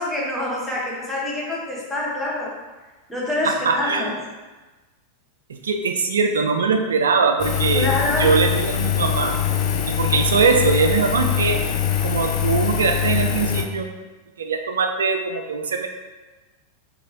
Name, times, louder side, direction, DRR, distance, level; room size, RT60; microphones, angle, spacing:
voice 1, 0.0-2.5 3.1-4.1 7.7-8.5, left 2 dB, 5° left, -5 dB, 0.7 m, -26 dB
voice 2, 3.4-4.1 5.6-7.9 8.2-9.4 9.9-11.6 12.0-13.9 14.4-15.9, right 5 dB, 65° right, 5 dB, 0.3 m, -21 dB
Engine, 7.4-13.6, left 9 dB, 45° left, 0.3 m, -23 dB
3.0 x 3.0 x 2.4 m, 1.2 s
figure-of-eight pair, 90°, 0 cm